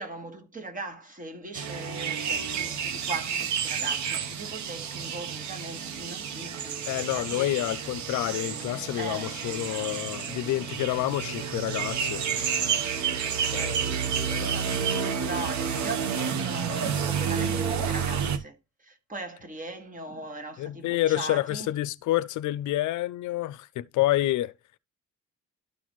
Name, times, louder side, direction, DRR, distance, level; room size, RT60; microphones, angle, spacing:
voice 1, 0.0-7.5 9.0-10.6 13.5-21.7, right 2 dB, 25° right, 1.7 m, -40 dB
sound 1, 1.5-18.4, right 7 dB, 70° right, 1.0 m, -30 dB
voice 2, 6.9-12.5 13.1-13.2 13.5-13.8 14.1-14.6 14.9-15.0 20.6-24.5, left 15 dB, 75° left, 0.5 m, -29 dB
12.0 x 4.1 x 3.1 m
cardioid pair, 90°, 30 cm